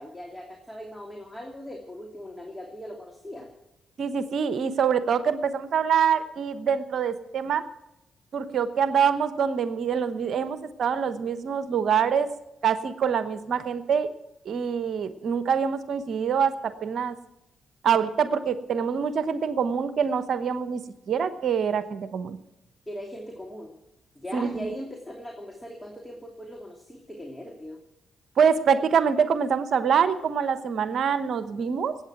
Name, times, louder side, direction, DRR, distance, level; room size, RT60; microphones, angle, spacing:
voice 1, 0.0-3.5 22.9-23.7 24.1-27.8, equal, 10° left, 1 dB, 2.8 m, -39 dB
voice 2, 4.0-7.7 8.3-12.3 12.6-14.1 14.4-17.2 17.8-20.8 21.1-22.4 24.3-24.7 28.4-32.0, right 7 dB, 70° right, 12 dB, 1.0 m, -25 dB
20.5 x 8.9 x 6.0 m, 0.90 s
supercardioid pair, 45°, 0 cm